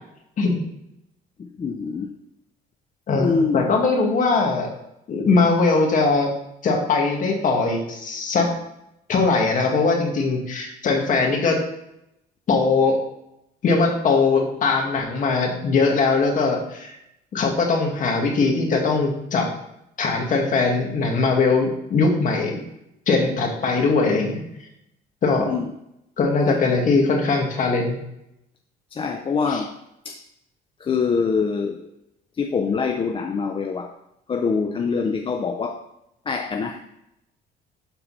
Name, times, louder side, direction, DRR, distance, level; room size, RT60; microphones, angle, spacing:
voice 1, 1.4-2.1 3.2-3.7 25.5-25.7 26.5-26.6 28.9-29.7 30.0-30.2 30.8-31.9 32.4-34.0 34.3-35.8 36.3-36.8, left 5 dB, 30° left, 5 dB, 0.6 m, -24 dB
voice 2, 3.1-4.7 5.1-6.3 6.6-8.5 9.1-11.6 12.5-13.0 13.6-17.0 17.3-19.5 20.0-22.6 23.1-24.4 25.2-25.5 26.2-28.0 29.5-29.6, left 4 dB, 50° left, 1 dB, 2.1 m, -20 dB
12.0 x 4.3 x 4.2 m, 0.84 s
cardioid pair, 110°, 17 cm